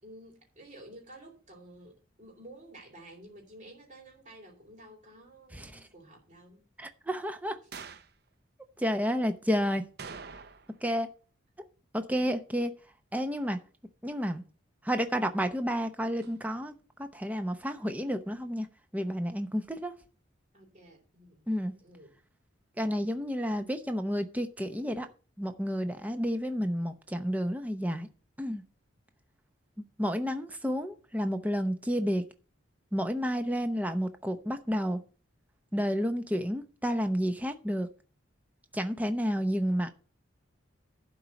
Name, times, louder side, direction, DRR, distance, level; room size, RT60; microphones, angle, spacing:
voice 1, 0.0-6.7 20.5-21.4 21.7-22.2, right 1 dB, 35° right, 3.3 m, -52 dB
voice 2, 6.8-7.6 8.8-9.8 10.8-11.1 11.9-12.7 13.1-13.6 14.0-14.4 14.8-16.7 17.0-18.7 18.9-19.9 21.5-21.7 22.8-25.1 25.4-28.1 28.4-28.6 30.0-32.2 32.9-35.0 35.7-37.9 38.7-39.9, equal, 10° right, 0.7 m, -30 dB
sound 1, 7.7-8.2 10.0-10.8 11.1-11.2 16.2-16.3, right 5 dB, 55° right, 0.7 m, -44 dB
11.5 x 4.6 x 7.0 m
head